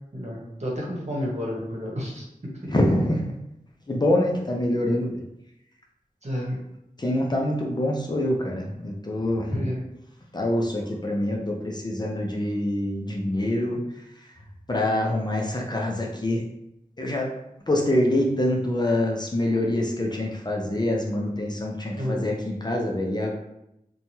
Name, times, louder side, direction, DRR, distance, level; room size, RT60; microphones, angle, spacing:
voice 1, 0.1-2.3 2.6-2.7 6.2-6.6 9.5-9.8 22.0-22.2, equal, 50° right, -4 dB, 1.0 m, -30 dB
voice 2, 2.7-3.2 3.9-5.1 7.0-9.6 10.3-13.8 14.7-16.4 17.0-17.3 17.7-23.3, left 1 dB, 30° left, -1 dB, 0.5 m, -25 dB
3.0 x 2.2 x 2.7 m, 0.84 s
wide cardioid pair, 45°, 15 cm